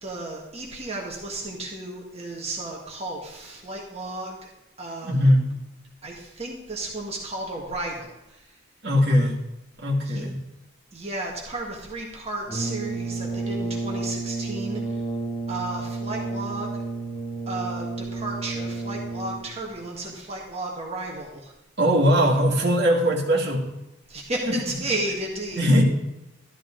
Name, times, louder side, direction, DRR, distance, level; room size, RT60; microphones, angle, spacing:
voice 1, 0.0-4.5 4.8-5.3 6.0-8.6 10.0-10.2 10.9-15.0 15.5-16.7 17.5-21.5 24.1-25.7, right 2 dB, 30° right, -2 dB, 1.6 m, -33 dB
voice 2, 5.0-5.4 8.8-9.3 9.8-10.4 21.8-23.6 25.6-25.8, equal, 60° right, -2 dB, 2.3 m, -20 dB
Brass instrument, 12.5-19.6, right 3 dB, 25° left, 1.2 m, -31 dB
13.0 x 11.5 x 3.8 m, 0.92 s
head